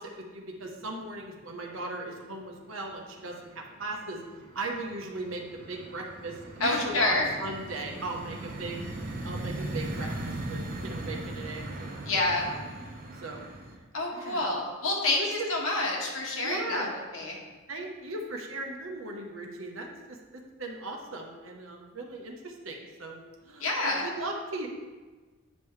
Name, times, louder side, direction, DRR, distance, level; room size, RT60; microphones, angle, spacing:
voice 1, 0.0-4.2 4.5-8.8 9.2-12.6 13.2-13.4 14.1-14.5 15.0-15.5 16.4-17.0 17.7-20.2 20.6-24.7, right 2 dB, 75° right, 1 dB, 1.1 m, -38 dB
sound 1, 0.7-1.2 1.5-2.3 2.6-13.8, right 1 dB, 45° right, 0.8 m, -39 dB
voice 2, 6.6-7.3 12.1-12.5 13.9-16.8 17.1-17.4 23.6-24.0, left 2 dB, 85° left, -2 dB, 1.6 m, -28 dB
9.3 x 5.3 x 3.3 m, 1.3 s
head